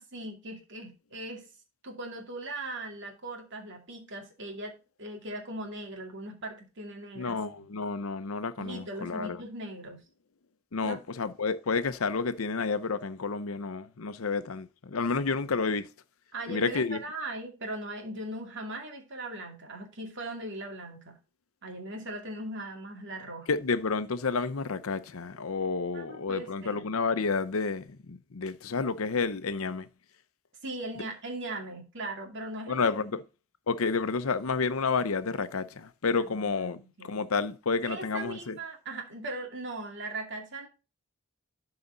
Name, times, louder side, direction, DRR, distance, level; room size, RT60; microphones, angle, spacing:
voice 1, 0.0-1.4 1.8-7.6 8.6-10.0 10.8-11.0 16.3-21.2 21.6-23.5 25.9-26.8 30.6-33.1 36.2-37.3 37.8-40.7, right 2 dB, 60° right, 2.5 m, -39 dB
voice 2, 7.2-9.4 10.7-15.9 16.5-17.0 23.5-29.9 32.7-33.2 33.7-38.6, left 4 dB, 85° left, 0.7 m, -30 dB
12.5 x 4.9 x 3.9 m
head